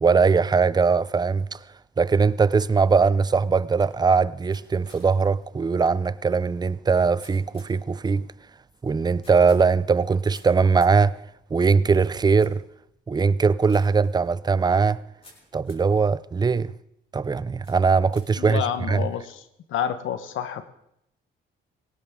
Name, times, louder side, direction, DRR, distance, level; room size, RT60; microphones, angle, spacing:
voice 1, 0.0-1.6 2.0-8.2 8.8-11.2 11.5-12.6 13.1-15.0 15.5-16.7 17.1-19.1, right 5 dB, 20° right, 0.5 m, -21 dB
sound 1, 2.4-16.0 16.6-17.0 17.6-19.5, left 2 dB, 30° left, 5.5 m, -57 dB
voice 2, 18.4-19.4 19.7-20.6, left 9 dB, 80° left, 1.2 m, -28 dB
19.0 x 17.5 x 3.7 m
cardioid pair, 90°, 20 cm